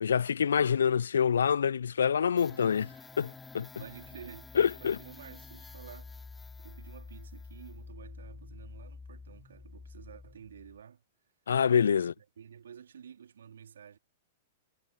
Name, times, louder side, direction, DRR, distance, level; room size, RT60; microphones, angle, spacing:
voice 1, 0.0-2.9 3.2-3.7 4.6-5.0 11.5-12.1, left 7 dB, 70° left, 0.4 m, -26 dB
sound 1, 2.4-10.8, left 4 dB, 10° left, 2.8 m, -49 dB
voice 2, 3.8-6.1 6.6-11.0 11.9-14.0, right 8 dB, 70° right, 3.7 m, -51 dB
figure-of-eight pair, 105°, 0 cm